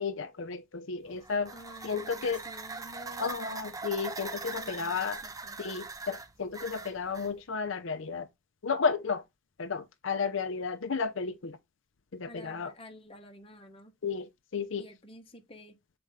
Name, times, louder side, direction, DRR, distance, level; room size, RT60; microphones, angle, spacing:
voice 1, 0.0-1.5 1.8-2.4 3.2-5.2 5.6-8.3 8.6-9.2 9.6-11.6 12.1-12.7 14.0-14.8, left 5 dB, 70° left, 0.6 m, -33 dB
sound 1, 1.1-7.3, right 3 dB, 15° right, 0.7 m, -41 dB
voice 2, 1.5-3.7 4.5-5.6 12.3-13.9 14.8-15.8, left 1 dB, 30° left, 1.2 m, -50 dB
6.7 x 4.4 x 3.6 m
head